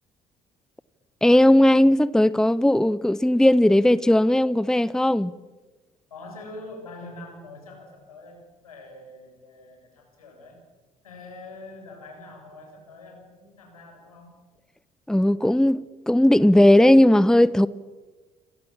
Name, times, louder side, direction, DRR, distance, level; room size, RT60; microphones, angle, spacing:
voice 1, 1.2-5.3 15.1-17.7, left 1 dB, 5° left, 0.9 m, -17 dB
voice 2, 6.1-8.4 8.6-10.6 11.0-14.3, left 2 dB, 85° left, 7.4 m, -44 dB
27.5 x 27.5 x 7.4 m
figure-of-eight pair, 50°, 18 cm